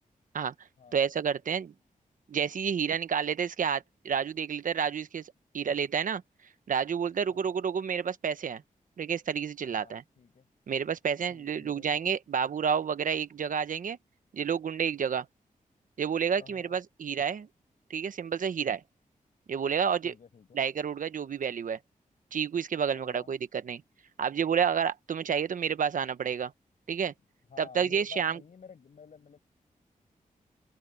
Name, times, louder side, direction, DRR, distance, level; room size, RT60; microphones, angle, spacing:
voice 1, 0.9-1.7 2.3-5.2 5.5-6.2 6.7-8.6 9.0-10.0 10.7-14.0 14.3-15.3 16.0-17.5 17.9-18.8 19.5-20.1 20.5-21.8 22.3-23.8 24.2-26.5 26.9-27.1 27.6-28.4, right 7 dB, 70° right, 1.1 m, -29 dB
voice 2, 7.3-7.6 9.7-10.5 11.3-11.9 16.3-16.7 20.0-20.6 22.9-23.3 27.5-29.4, left 6 dB, 65° left, 6.5 m, -52 dB
open air
wide cardioid pair, 110°, 14 cm